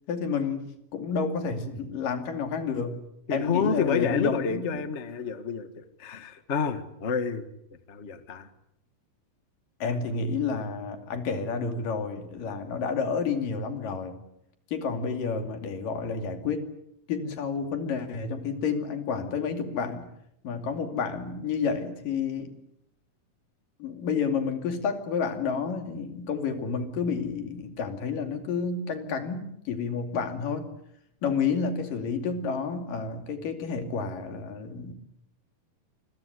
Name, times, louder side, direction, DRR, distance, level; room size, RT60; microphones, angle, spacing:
voice 1, 0.1-3.0 3.3-4.8 9.8-14.2 14.7-16.7 17.1-20.0 20.4-22.5 23.8-30.7 31.2-34.9, left 5 dB, 70° left, 6 dB, 4.2 m, -30 dB
voice 2, 3.3-7.5 7.9-8.5 9.8-9.9, left 5 dB, 45° left, 10 dB, 0.8 m, -29 dB
27.5 x 22.0 x 8.2 m, 0.77 s
omnidirectional pair, 4.0 m